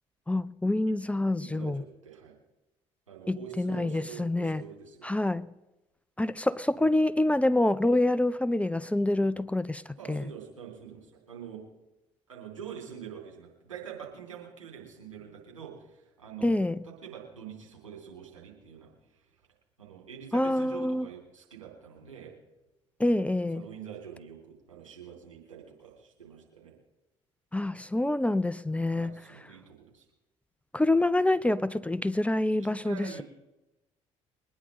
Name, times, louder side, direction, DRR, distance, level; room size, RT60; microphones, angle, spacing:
voice 1, 0.3-1.8 3.3-4.6 5.0-5.5 6.2-9.8 10.1-10.2 16.4-16.8 20.3-21.1 23.0-23.6 27.5-29.1 30.7-33.2, left 1 dB, 10° left, 0.6 m, -26 dB
voice 2, 1.3-2.3 3.1-5.2 10.0-11.7 12.3-19.2 19.8-22.3 23.5-26.7 28.9-30.0 32.5-33.2, right 8 dB, 85° right, 3.2 m, -45 dB
22.5 x 10.0 x 3.8 m
figure-of-eight pair, 50°, 16 cm